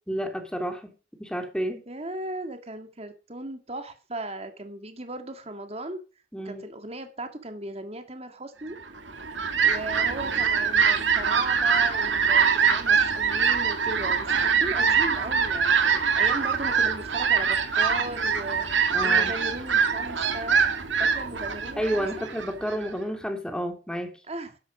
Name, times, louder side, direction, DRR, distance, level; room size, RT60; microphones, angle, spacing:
voice 1, 0.1-0.9 1.2-1.8 6.3-6.6 18.9-19.3 21.8-24.1, equal, 5° left, 2.3 m, -30 dB
voice 2, 1.9-6.0 6.4-8.8 9.6-18.7 19.0-20.6 21.0-22.3 24.3-24.6, right 2 dB, 35° right, 2.0 m, -37 dB
Fowl, 9.0-22.9, right 6 dB, 85° right, 2.3 m, -24 dB
12.5 x 10.5 x 5.0 m
head